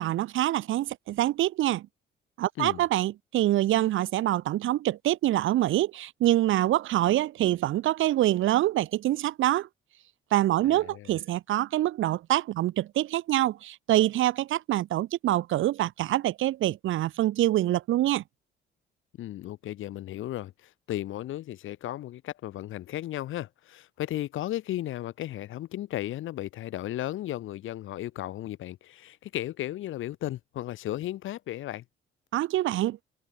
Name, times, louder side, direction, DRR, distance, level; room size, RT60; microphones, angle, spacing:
voice 1, 0.0-1.8 2.4-9.7 10.3-18.2 32.3-33.0, right 14 dB, 80° right, 1.5 m, -25 dB
voice 2, 10.6-11.2 19.2-31.8, left 14 dB, 85° left, 6.2 m, -35 dB
cardioid pair, 90°, 20 cm